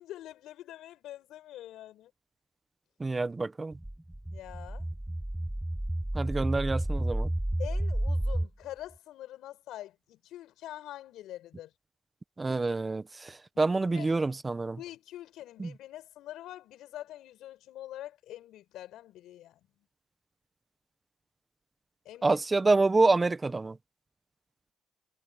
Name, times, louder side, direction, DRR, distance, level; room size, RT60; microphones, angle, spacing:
voice 1, 0.0-2.1 4.3-4.9 7.6-11.7 13.5-14.1 14.8-19.6 22.0-22.4, left 13 dB, 85° left, 5.9 m, -45 dB
voice 2, 3.0-3.8 6.1-7.3 12.4-14.8 15.6-15.7 22.2-23.8, right 3 dB, 25° right, 1.3 m, -27 dB
sound 1, 3.7-8.5, right 1 dB, 5° right, 2.1 m, -31 dB
cardioid pair, 90°, 0 cm